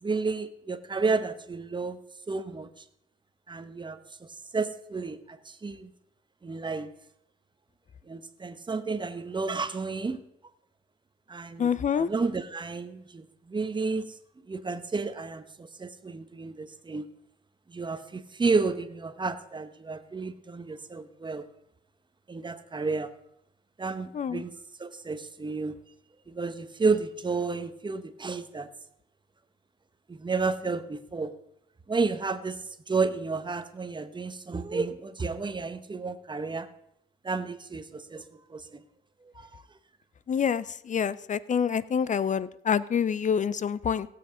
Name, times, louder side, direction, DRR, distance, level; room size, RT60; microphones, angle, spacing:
voice 1, 0.0-2.0 2.3-2.7 3.5-4.3 4.5-5.9 6.4-6.9 8.1-10.2 11.3-14.1 14.5-17.1 17.7-21.5 22.3-23.1 23.8-24.5 24.8-25.8 26.3-28.7 30.1-31.3 31.9-36.7 37.2-38.8 39.2-39.6, right 4 dB, 25° right, 11 dB, 1.0 m, -31 dB
voice 2, 11.6-12.1 24.1-24.4 40.3-44.1, left 7 dB, 40° left, 19 dB, 0.6 m, -27 dB
17.0 x 7.8 x 5.0 m, 0.78 s
cardioid pair, 90°, 20 cm